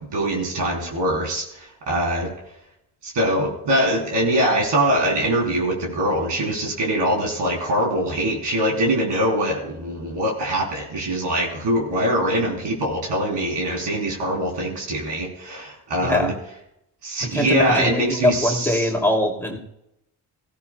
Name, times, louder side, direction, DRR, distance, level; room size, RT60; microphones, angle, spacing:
voice 1, 0.1-2.3 3.0-16.3 17.0-18.9, right 1 dB, 65° right, 0 dB, 3.7 m, -23 dB
voice 2, 17.3-19.6, left 1 dB, 5° left, 1 dB, 2.6 m, -22 dB
16.5 x 15.0 x 2.3 m, 0.82 s
supercardioid pair, 45°, 45 cm